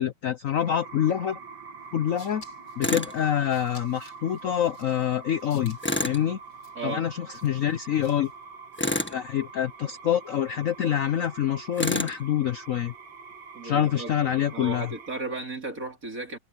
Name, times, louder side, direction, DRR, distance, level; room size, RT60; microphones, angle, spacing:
voice 1, 0.0-1.4 1.9-2.4 2.8-6.4 6.8-8.3 9.1-12.9 13.6-14.9, left 10 dB, 85° left, 0.7 m, -26 dB
sound 1, 0.6-15.2, right 5 dB, 55° right, 1.9 m, -45 dB
sound 2, 1.8-8.4, left 2 dB, 60° left, 6.4 m, -55 dB
Tools, 2.8-3.1 5.8-6.2 8.8-9.2 11.8-12.2, left 1 dB, 5° left, 1.3 m, -27 dB
voice 2, 13.5-14.1 14.5-16.4, right 3 dB, 40° right, 3.8 m, -34 dB
omnidirectional pair, 2.3 m